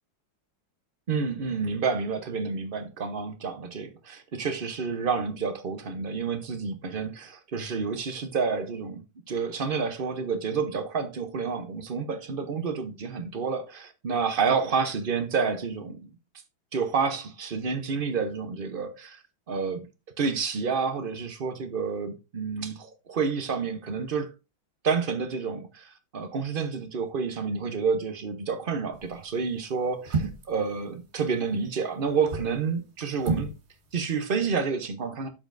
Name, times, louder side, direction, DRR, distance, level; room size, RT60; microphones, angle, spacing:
voice 1, 1.1-16.1 16.7-19.2 19.5-19.9 20.2-24.3 24.8-33.5 33.9-35.3, right 5 dB, 60° right, 0.5 m, -29 dB
sound 1, 28.9-29.2 30.0-30.6 32.1-32.6 33.2-33.6 33.9-34.0, right 4 dB, 40° right, 1.1 m, -30 dB
12.5 x 5.2 x 2.6 m
omnidirectional pair, 2.2 m